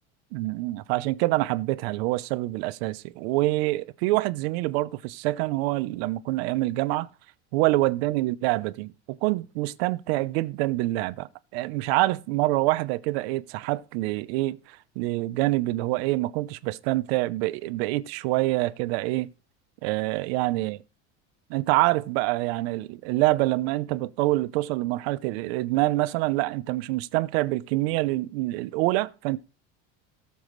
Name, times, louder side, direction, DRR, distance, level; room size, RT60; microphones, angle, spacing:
voice 1, 0.3-7.1 7.5-19.3 19.8-20.8 21.5-29.4, right 19 dB, 65° right, 0.8 m, -26 dB
17.5 x 7.1 x 3.2 m
cardioid pair, 170°, 34 cm